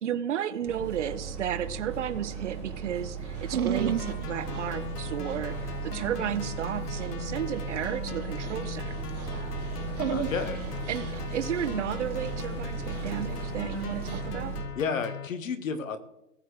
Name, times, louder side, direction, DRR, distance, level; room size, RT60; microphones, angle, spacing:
voice 1, 0.0-8.9 10.9-14.5, right 9 dB, 50° right, 11 dB, 0.9 m, -33 dB
sound 1, 0.7-14.6, right 6 dB, 5° left, 0.9 m, -37 dB
Dog, 3.4-14.2, right 8 dB, 70° right, 1.4 m, -37 dB
sound 2, 3.8-15.3, left 8 dB, 80° left, 1.1 m, -39 dB
voice 2, 10.1-10.6 14.8-16.0, left 5 dB, 55° left, 11 dB, 1.3 m, -31 dB
18.5 x 7.7 x 3.2 m, 0.87 s
hypercardioid pair, 155°, 46 cm